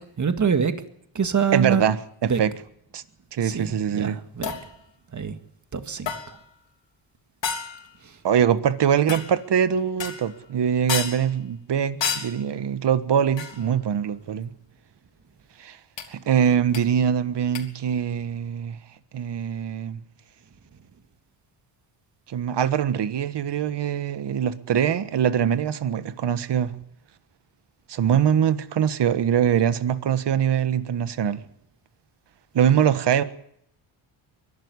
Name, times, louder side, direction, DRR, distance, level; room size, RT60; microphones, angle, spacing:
voice 1, 0.2-0.7 1.2-1.8 2.2-2.4 3.4-4.5 5.1-5.4 5.7-6.1 8.0-8.1, right 6 dB, 35° right, 1.9 m, -25 dB
voice 2, 1.5-2.0 2.2-2.5 2.9-3.0 3.3-4.2 8.2-14.5 15.6-15.8 16.1-18.8 19.1-20.0 22.3-26.7 27.9-31.4 32.5-33.2, right 8 dB, 55° right, 1.4 m, -23 dB
sound 1, 4.4-4.8 6.1-6.5 7.4-7.9 9.1-9.4 10.0-10.4 10.9-11.3 12.0-12.5 13.4-13.7 16.0-16.1 16.7-16.8 17.5-17.6, left 7 dB, 65° left, 3.5 m, -30 dB
22.5 x 12.5 x 9.8 m
cardioid pair, 80°, 48 cm